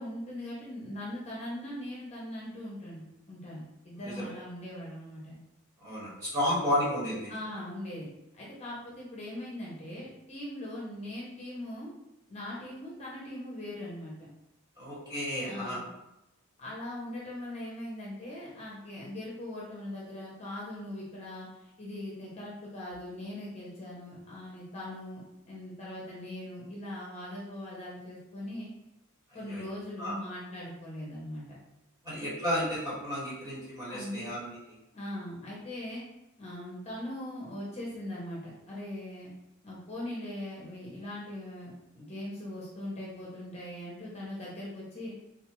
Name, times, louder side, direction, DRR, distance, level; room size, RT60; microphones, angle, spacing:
voice 1, 0.0-5.3 6.5-6.6 7.3-8.1 8.3-11.9 12.3-14.3 15.4-15.9 16.6-28.7 29.3-31.4 33.9-34.3 34.9-36.1 36.4-39.3 39.6-45.1, left 1 dB, 30° left, -5 dB, 0.6 m, -40 dB
voice 2, 4.0-4.3 5.8-7.3 14.8-15.8 29.5-29.7 30.0-30.2 32.0-34.5, equal, 20° right, -9 dB, 1.4 m, -32 dB
3.6 x 2.4 x 2.9 m, 0.92 s
head